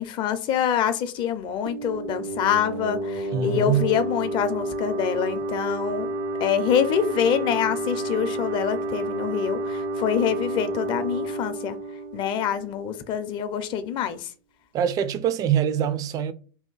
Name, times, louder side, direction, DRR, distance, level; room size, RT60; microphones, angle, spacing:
voice 1, 0.0-6.1 6.4-11.8 12.1-14.3, left 8 dB, 40° left, 0.5 m, -25 dB
sound 1, 1.7-13.1, right 1 dB, 75° right, 0.6 m, -30 dB
voice 2, 3.3-3.9 14.7-16.3, right 9 dB, 30° right, 0.4 m, -24 dB
2.8 x 2.1 x 3.9 m
supercardioid pair, 130°, 13 cm